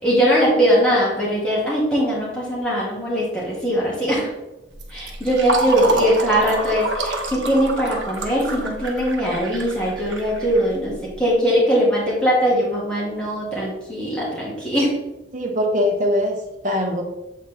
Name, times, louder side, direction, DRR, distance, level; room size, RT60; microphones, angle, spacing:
voice 1, 0.0-4.3 4.9-15.0, equal, 5° left, -7 dB, 2.0 m, -20 dB
Fill (with liquid), 4.7-11.1, right 2 dB, 70° right, 1.0 m, -28 dB
voice 2, 15.3-17.0, left 1 dB, 40° right, 2 dB, 1.0 m, -22 dB
7.6 x 4.1 x 3.4 m, 0.95 s
head